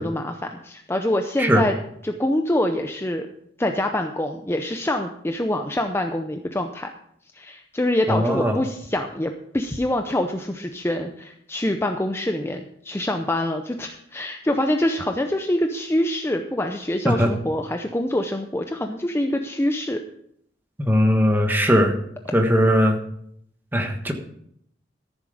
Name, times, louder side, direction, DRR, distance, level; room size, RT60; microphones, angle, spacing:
voice 1, 0.0-1.7 2.0-3.3 3.6-6.9 7.4-20.0, left 1 dB, 15° left, 5 dB, 0.6 m, -25 dB
voice 2, 8.1-8.6 17.0-17.3 20.8-21.9 22.3-23.0 23.7-24.1, equal, 10° right, 4 dB, 1.3 m, -19 dB
13.5 x 7.4 x 5.0 m, 0.69 s
head